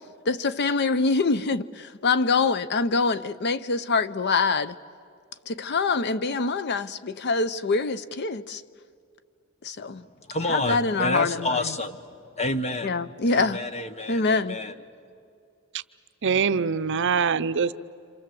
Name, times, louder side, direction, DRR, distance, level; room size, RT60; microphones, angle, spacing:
voice 1, 0.3-4.8 5.5-8.6 9.6-10.0 10.5-11.6 12.8-13.6 14.1-14.6, left 4 dB, 55° left, 0.6 m, -25 dB
voice 2, 10.0-13.0 13.3-14.7, left 2 dB, 30° left, 1.2 m, -29 dB
voice 3, 16.2-17.7, right 6 dB, 60° right, 0.6 m, -23 dB
28.0 x 26.5 x 7.7 m
head